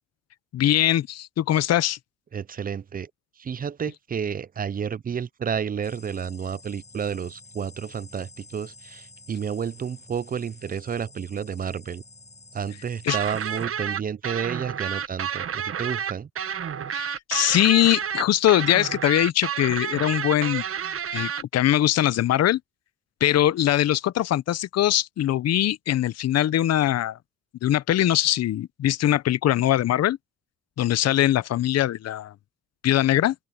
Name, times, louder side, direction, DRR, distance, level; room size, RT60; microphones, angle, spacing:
voice 1, 0.5-2.0 13.0-13.2 16.9-20.6 21.1-22.6 23.2-27.2 27.6-30.2 30.8-32.3 32.8-33.3, left 12 dB, 55° left, 0.7 m, -22 dB
voice 2, 2.3-3.1 3.4-12.0 12.5-16.3, right 7 dB, 30° right, 0.5 m, -31 dB
sound 1, 5.8-13.7, left 3 dB, 20° left, 6.9 m, -49 dB
sound 2, 13.1-21.4, right 8 dB, 45° right, 1.3 m, -30 dB
open air
cardioid pair, 90°, 30 cm